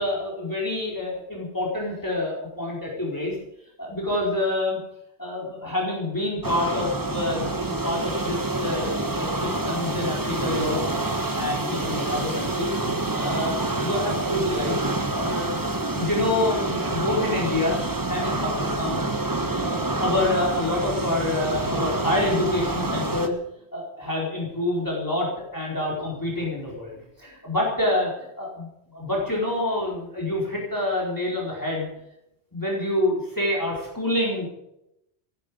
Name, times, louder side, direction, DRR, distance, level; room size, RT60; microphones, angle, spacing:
voice 1, 0.0-3.4 3.8-4.8 5.2-10.8 11.3-14.7 15.1-17.8 18.1-19.0 19.7-23.3 23.7-31.9 32.5-34.5, left 1 dB, 20° left, -3 dB, 4.5 m, -27 dB
sound 1, 6.4-23.3, right 2 dB, 20° right, 1.2 m, -27 dB
15.5 x 11.5 x 7.1 m, 0.82 s
omnidirectional pair, 1.1 m